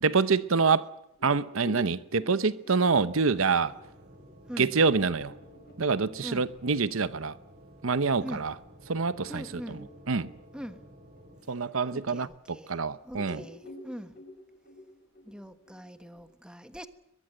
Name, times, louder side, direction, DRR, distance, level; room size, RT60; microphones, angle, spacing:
voice 1, 0.0-0.9 1.2-3.8 4.6-5.3 5.8-7.4 7.8-8.5 8.9-9.8 10.1-10.3 11.5-13.4, right 4 dB, 80° right, 0.9 m, -26 dB
sound 1, 1.2-8.2 8.7-8.8 9.1-12.8 13.1-16.2, left 1 dB, 50° left, 5.2 m, -50 dB
sound 2, 2.9-11.4, equal, 35° right, 3.5 m, -53 dB
voice 2, 4.4-4.7 6.2-6.5 8.2-8.5 9.3-9.9 10.5-10.8 11.9-12.7 13.0-14.1 15.2-16.9, equal, 5° right, 1.3 m, -42 dB
22.5 x 22.5 x 7.8 m
head